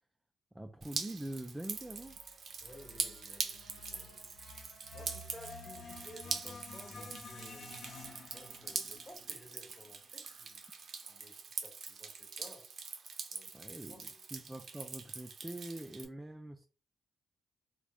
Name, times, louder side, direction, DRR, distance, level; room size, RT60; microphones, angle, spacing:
voice 1, 0.5-2.2 13.5-16.6, right 1 dB, 10° right, 0.3 m, -44 dB
Drip, 0.8-16.1, right 5 dB, 60° right, 0.5 m, -43 dB
sound 1, 1.7-10.1, left 2 dB, 70° left, 0.9 m, -51 dB
voice 2, 2.6-4.3 4.9-7.8 8.3-10.6 11.1-12.6 13.3-13.5 13.8-14.3, left 1 dB, 10° left, 1.0 m, -55 dB
2.5 x 2.3 x 3.4 m
cardioid pair, 95°, 0 cm